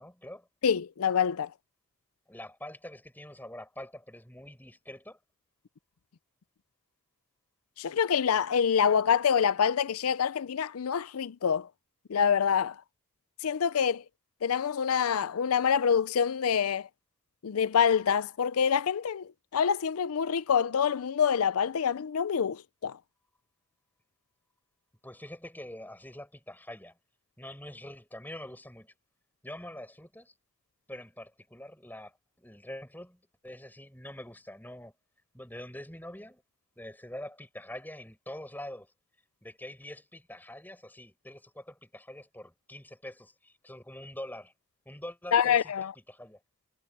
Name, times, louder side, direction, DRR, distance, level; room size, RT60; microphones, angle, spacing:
voice 1, 0.0-0.5 2.3-5.2 25.0-26.9 27.4-28.9 29.4-30.3 30.9-34.9 35.3-36.4 36.8-38.9 39.4-44.5 44.8-45.7 46.1-46.4, left 1 dB, 10° left, 6.7 m, -45 dB
voice 2, 0.6-1.5 7.8-11.7 12.1-12.8 13.4-14.0 14.4-16.9 17.4-23.0 45.3-45.9, left 7 dB, 90° left, 0.5 m, -26 dB
head